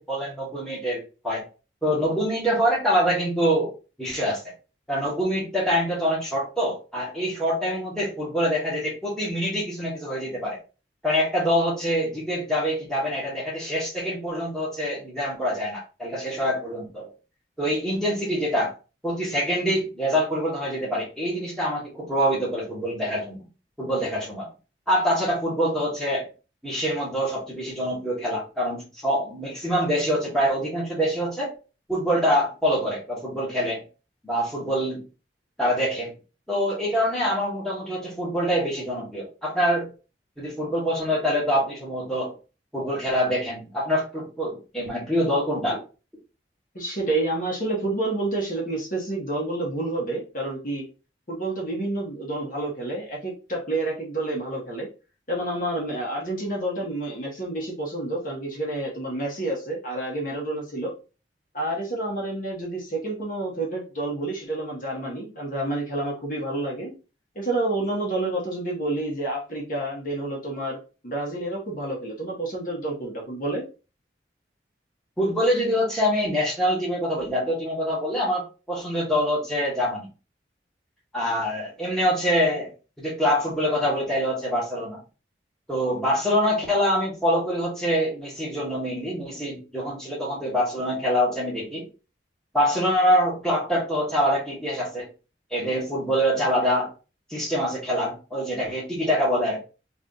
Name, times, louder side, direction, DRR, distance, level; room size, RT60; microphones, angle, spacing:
voice 1, 0.0-1.4 1.8-3.7 4.0-4.4 4.9-10.6 11.0-17.1 17.6-18.7 19.0-23.4 23.8-24.5 24.9-26.3 26.6-31.5 31.9-33.8 34.2-35.0 35.6-36.1 36.5-39.9 40.4-42.3 42.7-45.8 75.2-80.1 81.1-82.7 83.0-85.0 85.7-91.9 92.5-95.1 95.5-96.9 97.3-99.6, equal, 5° left, -5 dB, 1.4 m, -25 dB
voice 2, 46.7-50.8 51.3-54.9 55.3-60.9 61.5-66.9 67.3-70.8 71.0-73.6, right 2 dB, 45° left, -2 dB, 1.2 m, -29 dB
3.3 x 2.6 x 3.8 m, 0.33 s
head